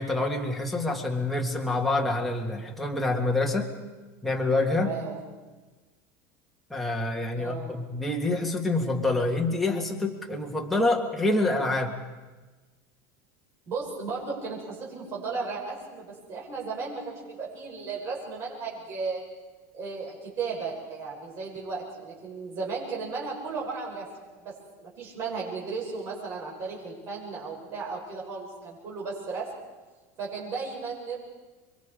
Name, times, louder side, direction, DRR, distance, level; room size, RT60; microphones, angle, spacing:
voice 1, 0.0-3.7 4.2-4.9 6.7-11.9, left 2 dB, ahead, 0 dB, 1.9 m, -27 dB
voice 2, 4.7-5.2 7.3-7.7 13.7-19.2 19.7-24.1 24.4-24.5 24.8-29.5 30.2-31.2, right 4 dB, 35° right, -4 dB, 7.0 m, -35 dB
28.0 x 24.0 x 5.0 m, 1.2 s
cardioid pair, 165°, 8 cm